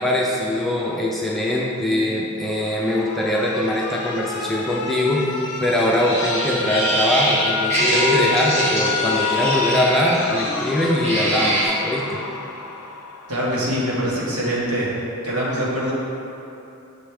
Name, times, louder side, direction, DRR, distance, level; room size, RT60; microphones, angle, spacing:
voice 1, 0.0-5.2 5.6-12.2, left 1 dB, ahead, -4 dB, 0.4 m, -22 dB
Alarm, 2.6-13.6, left 5 dB, 90° left, 0.5 m, -29 dB
sound 1, 6.0-11.7, equal, 30° right, 1.2 m, -23 dB
voice 2, 13.3-14.9 15.2-15.9, equal, 85° right, -6 dB, 1.5 m, -23 dB
6.3 x 5.0 x 3.4 m, 2.9 s
head